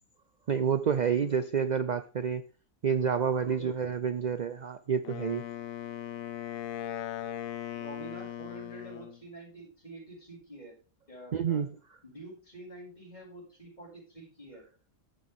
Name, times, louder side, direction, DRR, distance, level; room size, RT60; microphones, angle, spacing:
voice 1, 0.5-2.4 2.8-5.4 11.3-11.7, right 7 dB, 65° right, 12 dB, 0.4 m, -28 dB
Wind instrument woodwind instrument, 5.0-9.2, left 11 dB, 80° left, 1.2 m, -38 dB
voice 2, 7.7-10.7 11.1-11.6 12.0-14.6, right 2 dB, 30° left, -4 dB, 6.5 m, -47 dB
14.5 x 6.2 x 3.6 m, 0.36 s
omnidirectional pair, 1.4 m